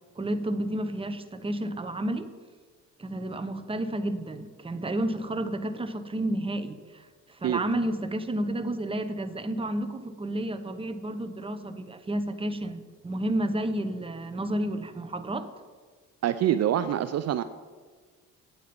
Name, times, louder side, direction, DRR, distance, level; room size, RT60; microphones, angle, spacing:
voice 1, 0.2-2.3 3.0-15.5, right 1 dB, 20° right, 10 dB, 0.8 m, -31 dB
voice 2, 16.2-17.4, right 11 dB, 55° right, 12 dB, 0.5 m, -25 dB
9.2 x 8.6 x 5.2 m, 1.5 s
cardioid pair, 90°, 30 cm